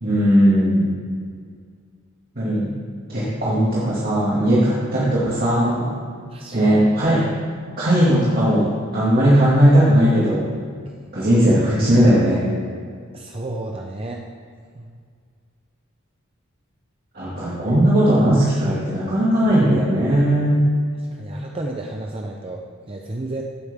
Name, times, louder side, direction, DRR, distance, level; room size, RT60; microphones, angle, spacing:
voice 1, 0.0-0.9 2.4-2.7 3.1-5.9 6.5-7.2 7.8-10.5 11.1-12.5 17.1-20.7, equal, 45° right, -8 dB, 2.3 m, -17 dB
voice 2, 6.3-6.7 13.1-14.2 14.7-15.0 21.1-23.4, right 2 dB, 25° right, 1 dB, 0.7 m, -32 dB
15.5 x 8.4 x 3.7 m, 2.1 s
head